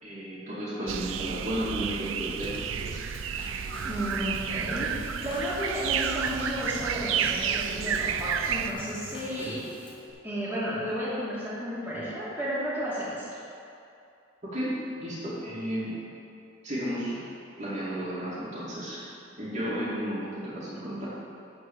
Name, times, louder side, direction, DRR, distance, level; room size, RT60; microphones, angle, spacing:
voice 1, 0.0-3.0 14.4-15.9 16.6-17.3 17.6-19.0 19.4-21.1, equal, 35° right, -9 dB, 2.4 m, -33 dB
sound 1, 0.9-8.7, right 7 dB, 85° right, 0.5 m, -31 dB
Drum kit / Snare drum / Bass drum, 2.4-10.1, left 1 dB, 25° left, 1.2 m, -45 dB
voice 2, 3.8-4.9 5.2-9.6 10.2-13.4, equal, 10° right, -10 dB, 2.5 m, -32 dB
12.0 x 4.7 x 7.1 m, 2.6 s
head